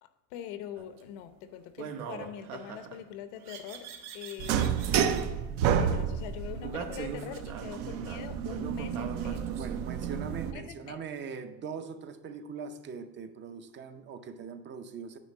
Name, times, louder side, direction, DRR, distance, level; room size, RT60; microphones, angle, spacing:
voice 1, 0.0-3.9 4.1-5.0 5.8-9.6 10.5-11.0, left 9 dB, 70° left, 10 dB, 0.8 m, -43 dB
sound 1, 0.8-1.0 1.8-3.0 3.4-5.2 6.6-10.1, right 6 dB, 80° right, 1.2 m, -42 dB
sound 2, 4.4-10.5, right 8 dB, 65° right, 0.8 m, -30 dB
voice 2, 9.5-15.2, right 6 dB, 30° right, 9 dB, 0.6 m, -41 dB
9.2 x 3.3 x 6.5 m, 1.0 s
supercardioid pair, 130°, 40 cm